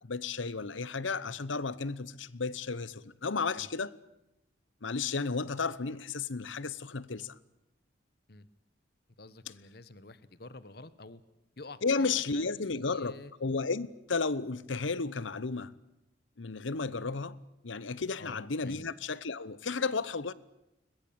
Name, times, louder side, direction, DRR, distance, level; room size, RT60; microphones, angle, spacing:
voice 1, 0.0-3.9 4.8-7.3 11.8-13.1 13.4-15.7 16.4-17.4 17.6-20.3, left 4 dB, 85° left, 0.9 m, -33 dB
voice 2, 9.2-11.2 11.6-13.3 18.2-18.8, left 2 dB, 55° left, 1.2 m, -49 dB
21.5 x 21.5 x 8.7 m
head